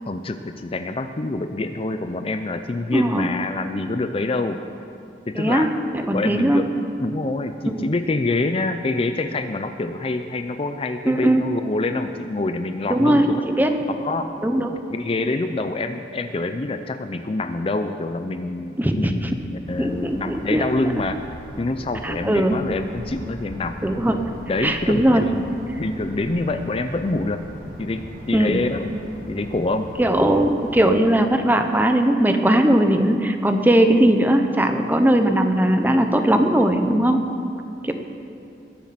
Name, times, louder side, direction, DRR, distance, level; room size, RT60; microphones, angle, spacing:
voice 1, 0.1-4.6 5.3-5.7 6.1-6.7 7.0-13.4 14.0-14.3 14.9-21.2 21.6-23.8 24.5-27.4 27.8-29.0 29.3-29.9, left 2 dB, 30° left, 8 dB, 0.5 m, -26 dB
voice 2, 2.9-3.3 5.3-5.7 5.9-6.6 11.1-11.5 12.9-13.7 14.4-14.7 18.8-19.3 19.8-20.6 22.0-22.6 23.8-24.2 24.6-25.3 28.3-28.6 30.0-37.2 37.8-37.9, right 1 dB, 10° right, 6 dB, 0.8 m, -19 dB
sound 1, 19.6-30.8, equal, 50° right, 2.2 m, -39 dB
21.0 x 7.3 x 5.8 m, 2.5 s
head